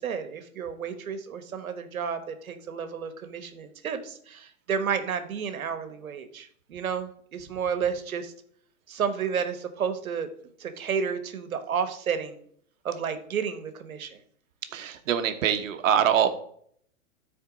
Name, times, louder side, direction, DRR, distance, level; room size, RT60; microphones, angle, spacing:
voice 1, 0.0-8.3 8.9-10.3 10.6-12.4 12.8-14.2, right 7 dB, 85° right, 9 dB, 1.3 m, -31 dB
voice 2, 14.7-16.3, right 9 dB, 65° right, 8 dB, 1.2 m, -24 dB
13.0 x 4.4 x 3.9 m, 0.64 s
hypercardioid pair, 130°, 41 cm